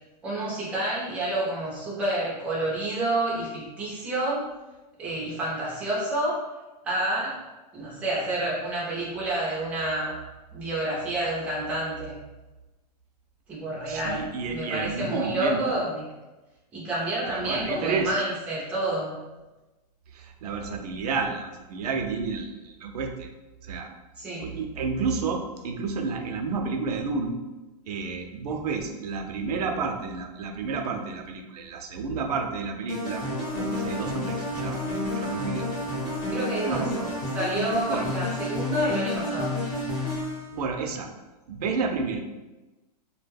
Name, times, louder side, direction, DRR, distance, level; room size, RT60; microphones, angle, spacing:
voice 1, 0.2-4.5 5.0-6.5 6.8-7.4 7.7-10.1 10.5-12.2 13.5-16.0 16.7-19.2 24.2-24.5 36.3-36.9 37.3-39.5, right 1 dB, 5° right, -7 dB, 0.4 m, -29 dB
voice 2, 13.9-15.8 17.2-18.2 20.1-23.3 23.6-23.9 24.4-27.4 27.9-33.3 33.6-34.8 35.1-35.7 36.7-37.2 37.9-38.1 40.5-41.1 41.5-42.2, right 4 dB, 70° right, 3 dB, 0.5 m, -30 dB
sound 1, 32.9-40.5, left 1 dB, 30° left, 0.8 m, -30 dB
2.3 x 2.1 x 3.3 m, 1.1 s
supercardioid pair, 175°, 21 cm